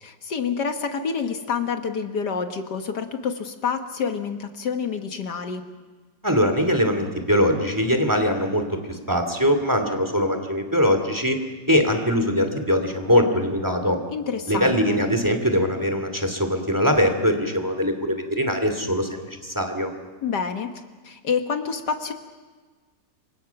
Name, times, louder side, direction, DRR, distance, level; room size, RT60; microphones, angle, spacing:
voice 1, 0.0-5.6 14.1-15.0 20.2-20.7 21.0-22.1, left 6 dB, 70° left, 6 dB, 1.9 m, -28 dB
voice 2, 6.2-11.4 11.7-14.0 14.5-19.9, equal, 10° right, 6 dB, 2.5 m, -22 dB
28.0 x 24.5 x 5.9 m, 1.4 s
omnidirectional pair, 1.9 m